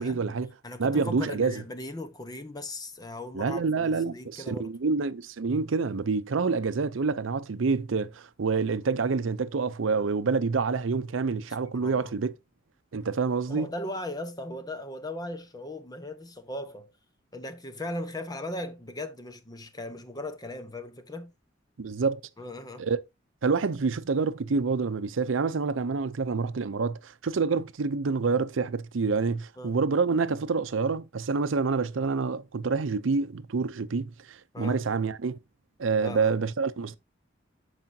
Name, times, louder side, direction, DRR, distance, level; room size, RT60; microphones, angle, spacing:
voice 1, 0.0-0.5 0.8-1.5 3.3-12.3 12.9-13.7 21.8-22.2 22.8-23.0 23.4-35.4 35.8-37.0, right 4 dB, 85° right, 0.6 m, -27 dB
voice 2, 0.6-4.7 11.7-12.1 13.5-16.9 17.3-21.3 22.4-22.9 29.6-29.8 34.5-34.8 36.0-36.4, left 1 dB, 20° left, 1.0 m, -38 dB
13.5 x 4.9 x 2.8 m
head